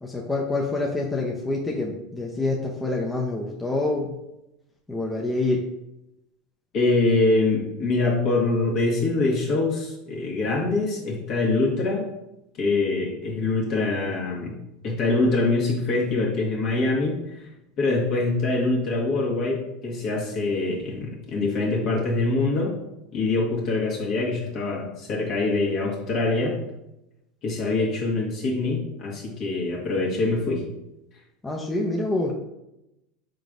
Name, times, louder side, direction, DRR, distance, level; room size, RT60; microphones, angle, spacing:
voice 1, 0.0-4.2 4.9-5.7 31.4-32.3, left 2 dB, 15° left, -2 dB, 0.6 m, -26 dB
voice 2, 6.7-12.0 12.6-14.6 14.8-17.2 17.8-22.7 23.1-26.6 27.4-30.6, left 3 dB, 50° left, -2 dB, 1.4 m, -24 dB
4.7 x 3.8 x 2.5 m, 0.89 s
hypercardioid pair, 85°, 0 cm